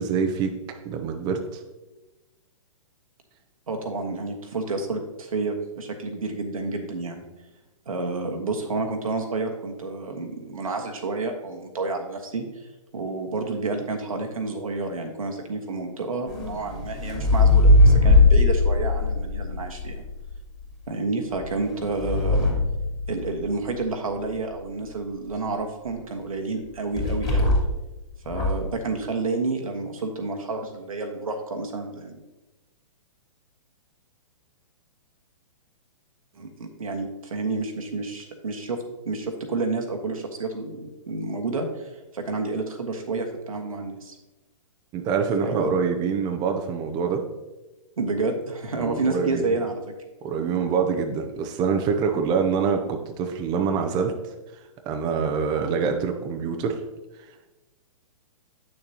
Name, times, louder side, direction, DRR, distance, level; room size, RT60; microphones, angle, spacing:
voice 1, 0.0-1.6 44.9-47.2 48.8-49.6 50.2-54.1 54.8-56.8, right 6 dB, 25° right, 4 dB, 0.6 m, -25 dB
voice 2, 3.7-7.2 7.9-12.4 12.9-20.0 20.9-22.6 23.1-27.5 28.2-32.2 36.4-44.2 45.4-45.7 48.0-49.8, right 3 dB, 85° right, 4 dB, 1.4 m, -30 dB
sound 1, 16.3-20.4 21.3-23.7 27.0-27.9 28.2-28.7, left 2 dB, 25° left, 2.6 m, -20 dB
8.5 x 6.7 x 2.9 m, 1.1 s
hypercardioid pair, 130°, 17 cm